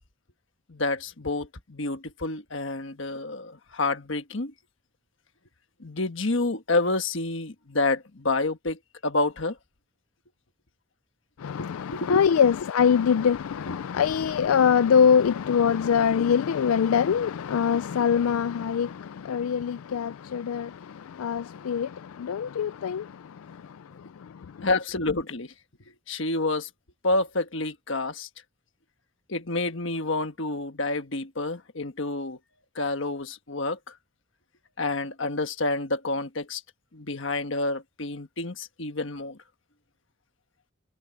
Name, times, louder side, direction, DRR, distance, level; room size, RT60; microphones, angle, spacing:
voice 1, 0.7-4.5 5.8-9.6 11.6-12.2 13.7-13.8 24.6-25.5 26.1-26.7 27.0-28.3 29.3-32.4 32.7-33.8 34.8-36.6 36.9-39.4, left 2 dB, 60° left, 1.4 m, -28 dB
voice 2, 11.4-23.8 24.2-24.3 24.6-24.7, left 7 dB, 85° left, 0.4 m, -24 dB
head